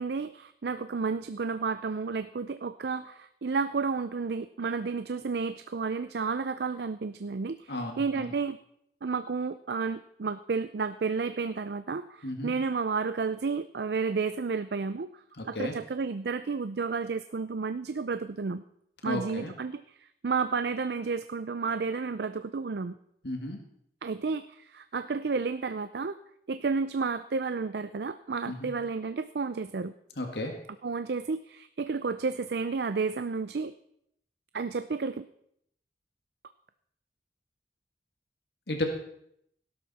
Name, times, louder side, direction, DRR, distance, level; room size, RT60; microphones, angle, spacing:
voice 1, 0.0-8.6 9.0-15.1 15.5-18.6 19.0-19.8 20.2-23.0 24.0-26.2 26.5-29.9 30.8-33.7 34.5-35.2, right 4 dB, 65° right, 12 dB, 0.5 m, -31 dB
voice 2, 7.7-8.3 12.2-12.5 15.4-15.8 19.0-19.5 23.2-23.6 28.5-28.7 30.2-30.5 38.7-38.8, left 1 dB, 70° left, 3 dB, 1.8 m, -33 dB
18.0 x 12.0 x 4.2 m, 0.73 s
head